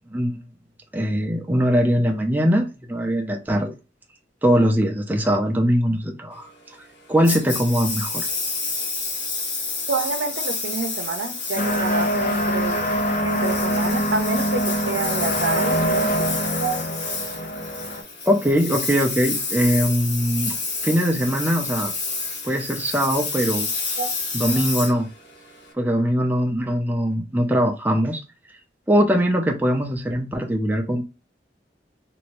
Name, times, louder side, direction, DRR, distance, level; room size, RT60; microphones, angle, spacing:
voice 1, 0.1-0.4 0.9-3.7 4.4-6.5 7.1-8.3 18.3-20.6 20.8-21.9 22.4-23.7 24.3-25.1 25.7-28.2 28.9-31.0, equal, 10° right, 0.5 m, -21 dB
Engine, 7.2-25.7, left 4 dB, 90° left, 1.1 m, -29 dB
voice 2, 9.9-16.1 16.6-16.8 24.0-24.1, right 4 dB, 80° right, 0.7 m, -28 dB
sound 1, 11.6-18.0, equal, 45° left, 0.5 m, -24 dB
2.9 x 2.7 x 3.1 m
head